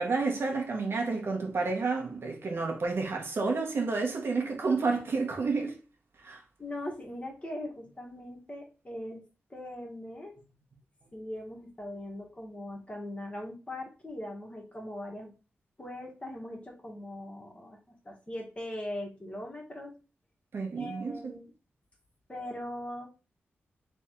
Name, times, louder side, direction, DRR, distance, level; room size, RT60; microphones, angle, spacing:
voice 1, 0.0-5.8 6.2-6.4 20.5-21.4, right 4 dB, 60° right, 1.3 m, -30 dB
voice 2, 6.6-9.2 9.5-10.4 11.1-15.3 15.8-17.8 18.0-19.9 20.8-21.5 22.3-23.1, left 1 dB, 25° left, 1.7 m, -40 dB
3.5 x 3.4 x 4.5 m
cardioid pair, 80°, 5 cm